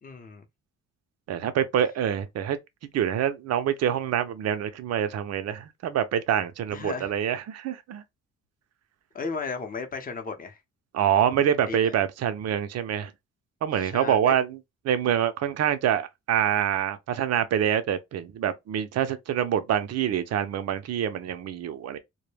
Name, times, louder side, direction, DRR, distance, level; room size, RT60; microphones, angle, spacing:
voice 1, 0.0-0.5 6.7-7.1 9.1-10.6 11.7-12.0 13.8-14.3, left 4 dB, 30° left, 0.7 m, -35 dB
voice 2, 1.3-2.6 2.9-8.0 10.9-13.1 13.6-14.6 14.8-22.0, right 9 dB, 55° right, 0.5 m, -26 dB
2.1 x 2.1 x 3.2 m
cardioid pair, 90°, 30 cm